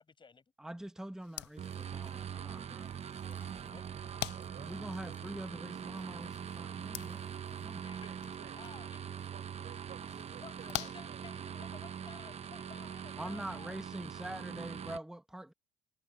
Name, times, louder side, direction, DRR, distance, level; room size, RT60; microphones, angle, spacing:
voice 1, 0.0-0.4 3.3-3.9 7.8-9.2 10.4-13.8, left 5 dB, 30° left, 5.9 m, -55 dB
voice 2, 0.6-2.9 4.6-7.8 13.2-15.5, right 1 dB, 5° right, 1.2 m, -44 dB
sound 1, 1.2-11.8, left 19 dB, 90° left, 0.5 m, -48 dB
sound 2, 1.6-15.0, right 8 dB, 40° right, 0.9 m, -43 dB
Liquid, 3.2-6.0, left 2 dB, 10° left, 5.7 m, -68 dB
voice 3, 4.3-5.2 8.0-8.6 9.3-11.2, right 10 dB, 55° right, 5.7 m, -56 dB
cardioid pair, 110°, 17 cm